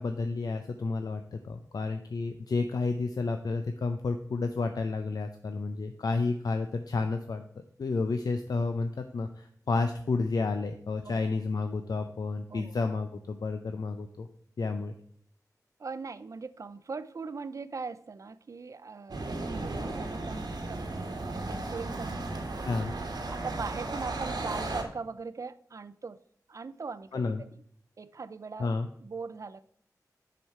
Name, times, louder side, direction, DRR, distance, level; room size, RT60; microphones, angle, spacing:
voice 1, 0.0-7.4 7.8-14.3 14.6-14.9 22.7-22.9 27.1-27.4 28.6-28.9, left 3 dB, 70° left, 7 dB, 0.5 m, -31 dB
voice 2, 15.8-22.8 23.3-26.2 26.5-27.5 28.0-28.7 29.0-29.6, right 4 dB, 50° right, 15 dB, 0.4 m, -40 dB
sound 1, 19.1-24.8, right 2 dB, 90° right, 1.2 m, -35 dB
7.6 x 4.9 x 5.5 m, 0.64 s
wide cardioid pair, 95°, 7 cm